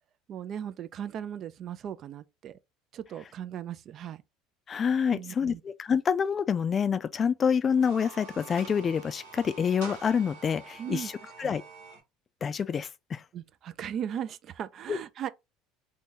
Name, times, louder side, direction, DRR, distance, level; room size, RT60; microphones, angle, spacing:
voice 1, 0.3-2.6 2.9-4.2 5.1-5.6 10.8-11.1 11.4-11.6 13.3-15.3, right 9 dB, 50° right, 0.3 m, -37 dB
voice 2, 4.7-11.1 11.4-11.6 12.4-13.2 14.9-15.0, left 7 dB, 35° left, 0.4 m, -27 dB
sound 1, 7.6-12.0, right 5 dB, 85° right, 1.1 m, -46 dB
2.7 x 2.6 x 3.6 m
hypercardioid pair, 85°, 0 cm